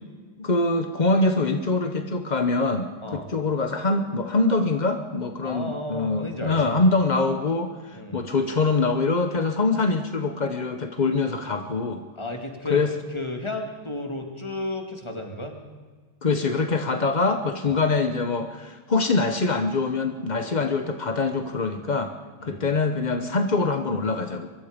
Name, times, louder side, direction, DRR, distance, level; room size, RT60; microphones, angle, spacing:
voice 1, 0.4-12.0 12.7-12.9 16.2-22.1 22.4-24.5, left 3 dB, 45° left, 6 dB, 0.5 m, -24 dB
voice 2, 5.4-6.8 7.9-8.2 12.2-12.8 13.1-15.6 17.7-17.8 22.4-22.6, left 2 dB, 15° left, 3 dB, 2.3 m, -33 dB
24.0 x 22.5 x 5.2 m, 1.5 s
omnidirectional pair, 2.4 m